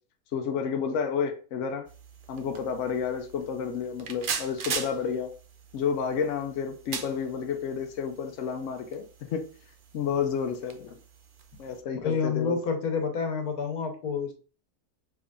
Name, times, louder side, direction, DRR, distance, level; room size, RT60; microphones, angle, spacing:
voice 1, 0.3-1.9 2.3-5.3 5.7-9.5 9.9-11.0 11.6-12.6, left 6 dB, 65° left, 0.9 m, -30 dB
sound 1, 1.8-11.8, right 6 dB, 65° right, 0.5 m, -41 dB
voice 2, 12.0-14.3, left 5 dB, 85° left, 1.5 m, -28 dB
5.1 x 3.5 x 2.4 m
omnidirectional pair, 1.5 m